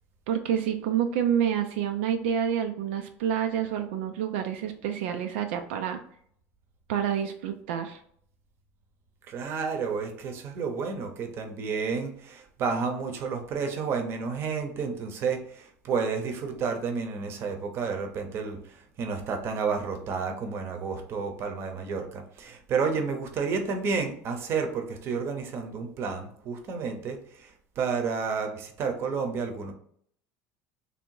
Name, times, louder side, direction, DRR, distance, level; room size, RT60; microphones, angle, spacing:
voice 1, 0.3-6.0 6.9-8.0, right 9 dB, 90° right, 5 dB, 0.4 m, -28 dB
voice 2, 9.3-29.7, right 5 dB, 45° right, 5 dB, 0.8 m, -31 dB
3.3 x 2.7 x 4.6 m, 0.64 s
supercardioid pair, 120°, 6 cm